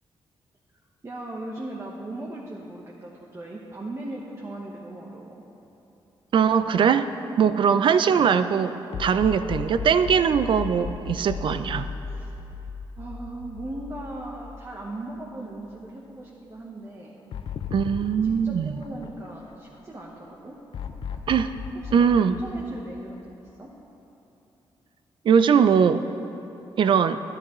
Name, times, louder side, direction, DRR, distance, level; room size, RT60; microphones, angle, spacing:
voice 1, 1.0-5.4 12.0-12.3 13.0-17.2 18.2-20.5 21.1-21.3 21.8-22.1 22.4-23.7, right 1 dB, 30° right, -3 dB, 1.0 m, -38 dB
voice 2, 6.3-7.1 7.4-11.9 17.7-18.8 21.3-21.5 21.9-22.4 25.2-26.0 26.8-27.2, right 7 dB, 60° right, 12 dB, 0.4 m, -21 dB
sound 1, 8.9-15.3 15.6-15.7 17.3-19.8 20.7-23.5, left 6 dB, 65° left, 0.5 m, -36 dB
12.0 x 10.5 x 3.1 m, 3.0 s
cardioid pair, 95°, 10 cm